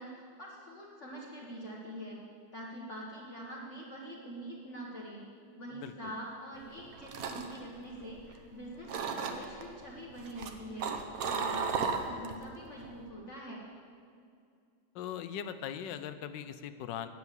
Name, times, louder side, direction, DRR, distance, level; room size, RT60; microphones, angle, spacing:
voice 1, 0.0-2.2 2.5-5.2 5.6-13.6, equal, 45° left, -4 dB, 1.5 m, -44 dB
voice 2, 5.7-6.1 14.9-17.1, left 9 dB, 85° left, 11 dB, 1.3 m, -40 dB
sound 1, 6.7-8.5 8.9-9.6 10.2-12.4 12.8-13.1, right 5 dB, 60° right, 1.2 m, -35 dB
9.8 x 7.0 x 8.2 m, 2.3 s
omnidirectional pair, 1.9 m